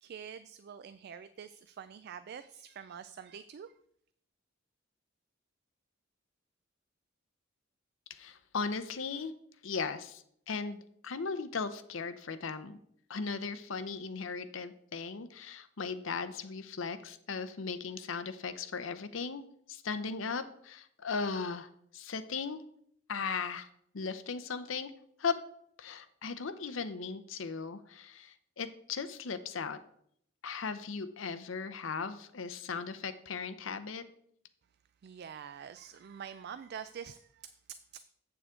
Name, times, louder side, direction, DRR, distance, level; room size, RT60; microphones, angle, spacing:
voice 1, 0.0-3.7 35.0-37.5 37.9-38.0, right 7 dB, 55° right, 0.3 m, -46 dB
voice 2, 8.1-9.3 9.6-12.8 13.1-22.6 23.1-23.7 23.9-24.9 25.2-25.4 25.8-29.8 30.4-34.0, left 5 dB, 75° left, 0.7 m, -37 dB
8.2 x 6.9 x 3.7 m
head